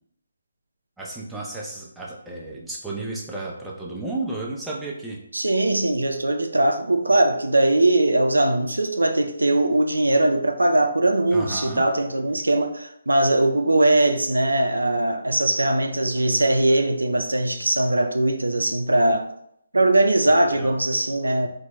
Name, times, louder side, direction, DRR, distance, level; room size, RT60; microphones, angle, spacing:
voice 1, 1.0-5.2 11.3-11.8 20.5-20.7, right 2 dB, 5° right, -5 dB, 0.5 m, -32 dB
voice 2, 5.3-19.3 19.7-21.5, right 1 dB, 90° right, 6 dB, 0.3 m, -20 dB
3.4 x 2.0 x 3.0 m, 0.74 s
figure-of-eight pair, 150°, 0 cm